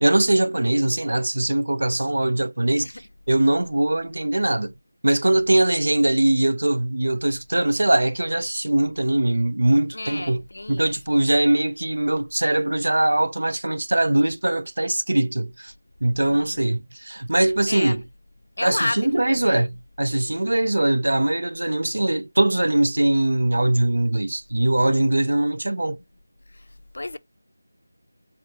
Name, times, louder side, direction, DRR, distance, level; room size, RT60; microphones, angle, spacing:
voice 1, 0.0-2.9 3.3-4.7 5.0-10.4 10.7-15.7 16.0-18.0 18.6-26.0, right 1 dB, 80° right, 0.4 m, -21 dB
voice 2, 9.9-10.9 16.3-16.6 17.7-18.0 18.6-19.6 26.5-27.2, left 2 dB, 75° left, 0.3 m, -32 dB
4.6 x 2.4 x 2.7 m
figure-of-eight pair, 175°, 0 cm